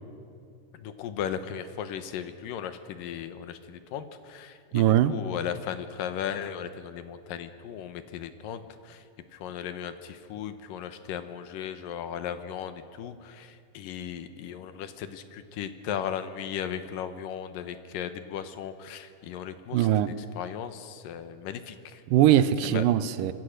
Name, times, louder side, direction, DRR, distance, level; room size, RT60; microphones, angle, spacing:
voice 1, 0.7-9.0 9.3-22.0 22.6-22.8, left 9 dB, 85° left, 2.8 m, -36 dB
voice 2, 4.7-5.1 19.7-20.1 22.1-23.3, right 12 dB, 80° right, 2.4 m, -21 dB
25.5 x 23.5 x 6.6 m
omnidirectional pair, 3.8 m